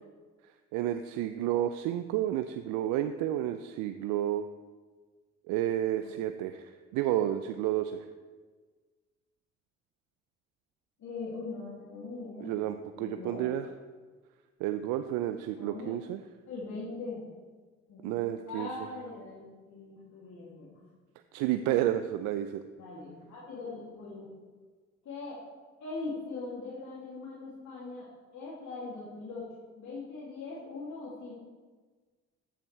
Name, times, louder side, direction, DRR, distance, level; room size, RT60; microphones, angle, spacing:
voice 1, 0.7-4.5 5.5-8.1 12.4-13.7 14.6-16.2 18.0-18.7 21.3-22.6, right 12 dB, 70° right, 9 dB, 0.6 m, -31 dB
voice 2, 11.0-12.5 13.0-13.4 15.5-15.9 16.5-17.2 17.9-18.1 18.5-20.8 22.8-24.3 25.0-25.4 25.8-28.1 28.3-29.4 29.8-31.3, left 3 dB, 55° left, -7 dB, 2.8 m, -41 dB
14.0 x 7.5 x 3.4 m, 1.4 s
hypercardioid pair, 45°, 34 cm